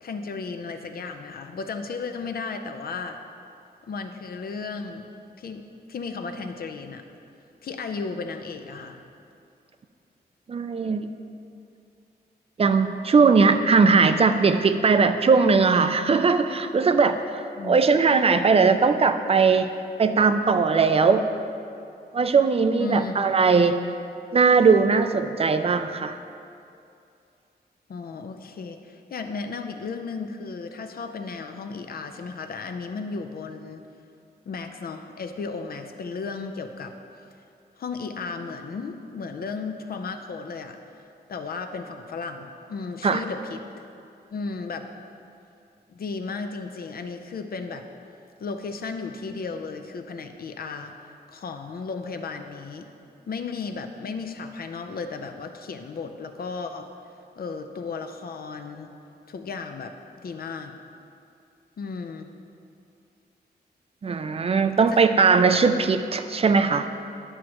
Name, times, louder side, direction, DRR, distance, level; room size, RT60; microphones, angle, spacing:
voice 1, 0.0-3.2 3.9-5.1 5.4-7.0 7.6-9.0 17.6-17.8 18.1-18.2 22.8-23.2 27.9-33.9 34.5-36.9 37.8-40.8 41.3-43.8 44.3-44.9 45.9-47.9 48.4-50.9 51.3-52.9 53.3-56.9 57.4-58.9 59.3-59.9 60.2-60.7 61.8-62.3 64.8-65.0, left 4 dB, 60° left, 6 dB, 0.6 m, -34 dB
voice 2, 10.5-11.1 12.6-19.7 20.0-21.3 22.1-23.8 24.3-26.2 43.0-43.2 64.0-66.9, right 4 dB, 35° right, 9 dB, 0.4 m, -19 dB
11.0 x 6.3 x 3.0 m, 2.6 s
wide cardioid pair, 130°, 17 cm